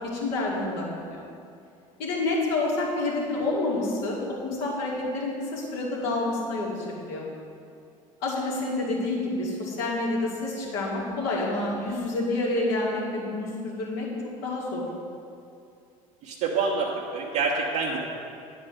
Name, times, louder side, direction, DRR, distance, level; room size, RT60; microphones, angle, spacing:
voice 1, 0.1-1.2 2.0-4.2 4.4-7.2 8.2-14.1 14.4-14.8, left 2 dB, 70° left, -4 dB, 2.7 m, -28 dB
voice 2, 16.2-18.0, right 4 dB, 65° right, -5 dB, 1.3 m, -27 dB
10.0 x 4.7 x 7.9 m, 2.5 s
hypercardioid pair, 75°, 17 cm